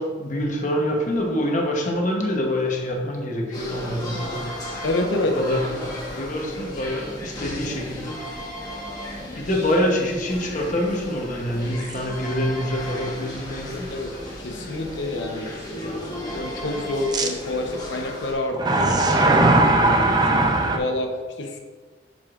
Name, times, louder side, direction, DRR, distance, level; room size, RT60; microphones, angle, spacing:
voice 1, 0.0-4.6 5.2-8.2 9.3-13.9, left 1 dB, 40° left, 0 dB, 1.1 m, -26 dB
sound 1, 3.5-18.3, left 1 dB, 20° left, 1.4 m, -35 dB
voice 2, 4.8-5.4 13.9-14.1 14.4-21.1 21.4-21.6, left 2 dB, 75° left, 3 dB, 0.9 m, -28 dB
sound 2, 11.8-12.0 12.6-12.7 17.1-17.3 18.5-20.8, right 2 dB, 20° right, 0.5 m, -18 dB
10.0 x 4.9 x 2.5 m, 1.4 s
head